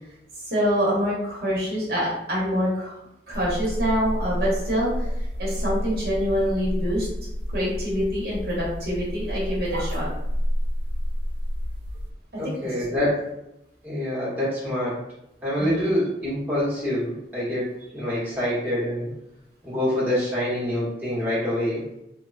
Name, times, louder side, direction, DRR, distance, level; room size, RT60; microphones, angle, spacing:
voice 1, 0.5-3.0 3.3-5.1 5.4-7.1 7.5-10.1 12.3-12.8 15.6-15.9, equal, 55° right, -6 dB, 0.9 m, -25 dB
sound 1, 3.3-12.1, equal, 80° right, 0.4 m, -29 dB
voice 2, 12.4-13.3 13.8-15.0 15.4-17.6 17.9-19.1 19.6-21.8, left 1 dB, 10° right, -9 dB, 0.9 m, -26 dB
2.9 x 2.1 x 2.4 m, 0.85 s
head